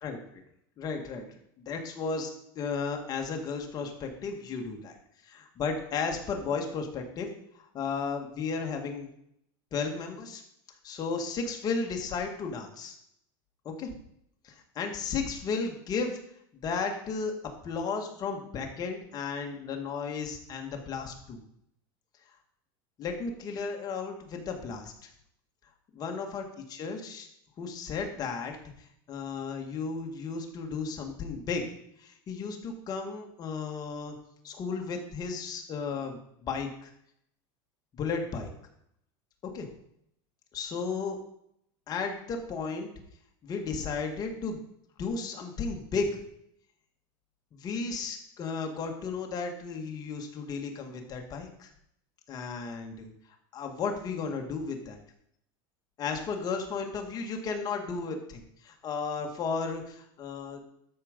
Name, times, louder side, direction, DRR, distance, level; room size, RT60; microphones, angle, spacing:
voice 1, 0.0-0.4 0.8-1.2 1.6-2.3 2.5-4.9 5.3-7.3 7.5-9.1 9.7-10.4 10.8-12.9 13.6-13.9 14.4-16.2 16.5-17.3 17.6-21.4 23.0-25.1 26.0-26.4 26.7-27.3 27.6-28.6 29.1-31.7 32.0-34.1 34.4-36.9 37.9-38.5 39.5-39.7 40.5-41.2 41.9-42.9 43.4-44.6 45.0-46.2 47.5-51.7 52.3-53.1 53.5-55.0 56.0-60.6, left 5 dB, 30° left, 3 dB, 1.7 m, -34 dB
13.0 x 5.1 x 5.2 m, 0.74 s
supercardioid pair, 145°, 13 cm